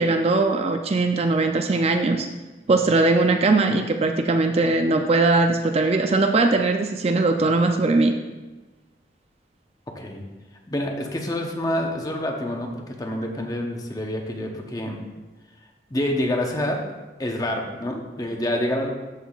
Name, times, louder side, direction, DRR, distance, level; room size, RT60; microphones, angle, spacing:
voice 1, 0.0-2.3 2.7-8.2, right 3 dB, 35° right, 5 dB, 0.4 m, -20 dB
voice 2, 10.7-15.0 15.9-16.8 17.2-18.9, left 1 dB, 20° left, 2 dB, 0.8 m, -27 dB
13.0 x 5.7 x 2.4 m, 1.2 s
head